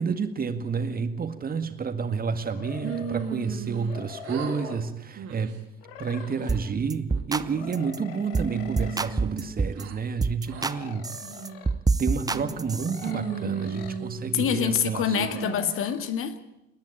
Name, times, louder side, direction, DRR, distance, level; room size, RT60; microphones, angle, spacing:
voice 1, 0.0-5.5 6.0-11.1 12.0-15.0, right 5 dB, 30° right, 1.9 m, -30 dB
sound 1, 2.5-3.4 3.8-4.8 5.8-6.7 7.5-9.2 10.5-11.7 12.7-14.0 15.2-16.1, left 9 dB, 70° left, 1.4 m, -44 dB
sound 2, 2.8-4.0 4.2-4.8 5.2-5.5 6.0-6.6 7.1-7.8 8.2-10.0 10.5-10.7 11.2-11.7 12.2-12.7 13.0-14.6 15.1-15.7, right 7 dB, 50° right, 3.0 m, -35 dB
sound 3, 6.5-6.6 6.9-7.5 7.7-8.0 8.3-8.5 8.8-9.8 10.2-10.8 11.0-13.1, right 3 dB, 10° right, 0.8 m, -27 dB
voice 2, 14.3-16.4, left 8 dB, 45° left, 1.8 m, -26 dB
29.0 x 10.5 x 8.8 m
figure-of-eight pair, 55°, 30 cm